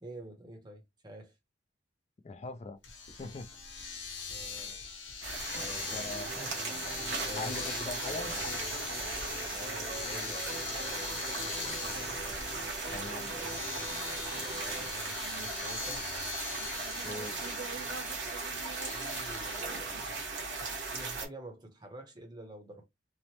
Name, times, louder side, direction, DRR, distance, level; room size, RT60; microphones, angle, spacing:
voice 1, 0.0-1.3 4.3-4.8 5.6-6.1 6.4-8.5 9.5-12.2 13.3-13.5 14.4-16.1 17.1-17.9 18.2-18.4 18.9-20.1 20.9-22.8, right 1 dB, 25° right, 0.7 m, -49 dB
voice 2, 2.2-2.8 3.1-3.5 5.9-6.3 7.4-8.3 12.9-13.4 17.0-17.4, left 3 dB, 35° left, 0.4 m, -40 dB
Domestic sounds home sounds, 2.8-19.7, left 5 dB, 80° left, 0.9 m, -41 dB
sound 1, 5.2-21.2, right 3 dB, 75° right, 1.1 m, -38 dB
Organ, 5.5-14.9, right 2 dB, 60° right, 0.6 m, -46 dB
3.1 x 2.0 x 2.8 m
head